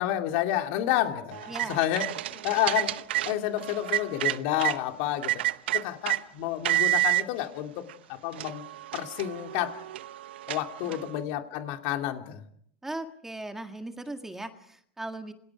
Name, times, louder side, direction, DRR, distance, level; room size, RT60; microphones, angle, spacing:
voice 1, 0.0-2.0 2.3-2.9 3.2-5.3 5.7-7.8 8.1-8.6 8.9-9.7 10.5-12.4, left 12 dB, 60° left, 4 dB, 2.9 m, -29 dB
sound 1, 1.3-4.8 5.2-6.2 6.6-7.2 7.9-8.0 8.3-11.1, right 16 dB, 90° right, 0.9 m, -29 dB
voice 2, 1.5-1.8 10.9-11.0 12.8-15.3, right 2 dB, 5° right, 6 dB, 1.8 m, -38 dB
28.5 x 23.0 x 4.9 m, 0.67 s
supercardioid pair, 135°, 6 cm